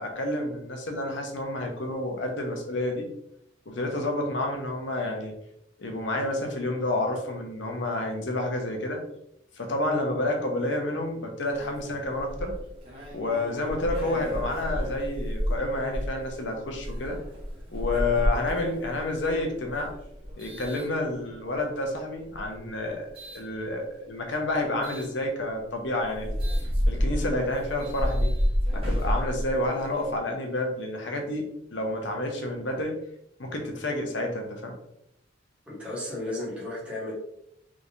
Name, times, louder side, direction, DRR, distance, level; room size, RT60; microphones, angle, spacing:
voice 1, 0.0-3.1 3.7-5.3 5.8-9.0 9.5-12.5 13.1-17.2 17.7-19.9 20.3-23.1 23.3-26.3 26.9-28.3 28.7-33.0 33.4-34.7, left 1 dB, 60° left, 2 dB, 0.8 m, -29 dB
sound 1, 11.5-21.6 22.2-23.4 24.8-25.1 25.6-25.7 26.0-30.2, equal, 30° right, 1.2 m, -31 dB
voice 2, 35.7-37.1, left 1 dB, 5° right, -8 dB, 1.3 m, -34 dB
3.7 x 3.2 x 2.6 m, 0.75 s
head